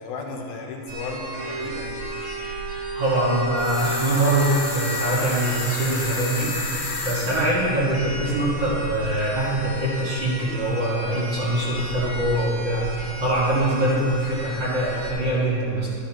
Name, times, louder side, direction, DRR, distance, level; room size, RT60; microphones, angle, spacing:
voice 1, 0.0-2.0, left 3 dB, 90° left, 1 dB, 2.8 m, -34 dB
sound 1, 0.9-15.1, equal, 60° right, 2.9 m, -35 dB
Wind instrument woodwind instrument, 1.4-5.4, right 3 dB, 75° right, 1.1 m, -33 dB
voice 2, 2.9-15.9, right 1 dB, 40° right, -8 dB, 1.8 m, -23 dB
sound 2, 3.6-7.5, left 3 dB, 55° left, 3.1 m, -31 dB
12.5 x 11.0 x 3.0 m, 2.6 s
omnidirectional pair, 4.1 m